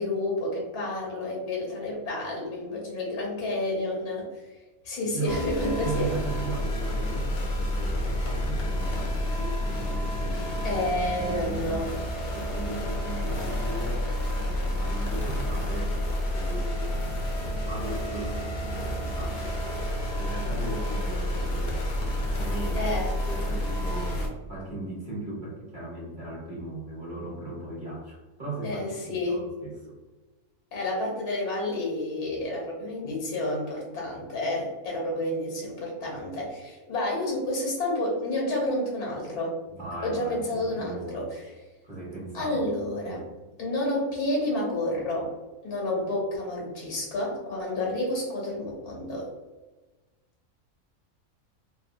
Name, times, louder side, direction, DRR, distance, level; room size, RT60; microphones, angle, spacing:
voice 1, 0.0-4.2 4.8-6.1 10.6-11.9 22.8-23.2 28.6-29.4 30.7-39.6 40.0-41.4 42.3-43.3 43.6-45.3 45.6-49.3, left 1 dB, 85° left, -2 dB, 1.4 m, -30 dB
voice 2, 5.0-5.4 5.7-11.8 12.3-16.0 16.3-17.3 17.6-18.4 18.7-19.9 20.1-21.8 22.1-22.9 23.2-30.0 39.7-41.3 41.8-42.6 43.0-43.2, right 2 dB, 35° right, -7 dB, 1.1 m, -38 dB
sound 1, 5.3-24.3, left 1 dB, 65° left, 0.4 m, -29 dB
3.1 x 2.1 x 2.5 m, 1.2 s
omnidirectional pair, 1.6 m